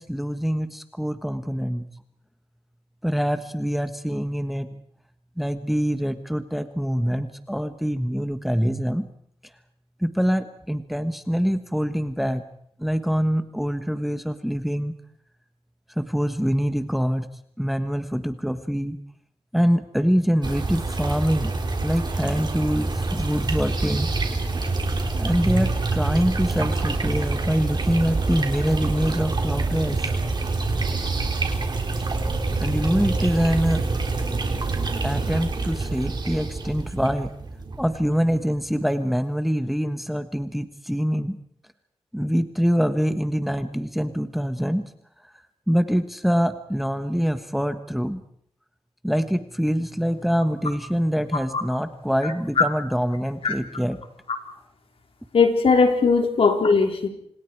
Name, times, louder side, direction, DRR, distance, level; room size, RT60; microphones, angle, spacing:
voice 1, 0.0-1.8 3.0-4.7 5.4-9.1 10.0-12.4 12.8-14.9 16.0-17.3 17.6-19.0 19.5-21.5 21.8-24.1 25.2-30.1 31.9-32.0 32.6-33.8 35.0-37.3 37.8-41.4 42.1-44.9 45.7-48.2 49.0-54.0, equal, ahead, 9 dB, 1.4 m, -24 dB
sound 1, 20.4-38.6, right 3 dB, 45° right, 4.0 m, -26 dB
voice 2, 55.3-57.1, left 4 dB, 65° left, 4 dB, 4.3 m, -18 dB
29.5 x 27.0 x 4.8 m, 0.67 s
wide cardioid pair, 105°, 10 cm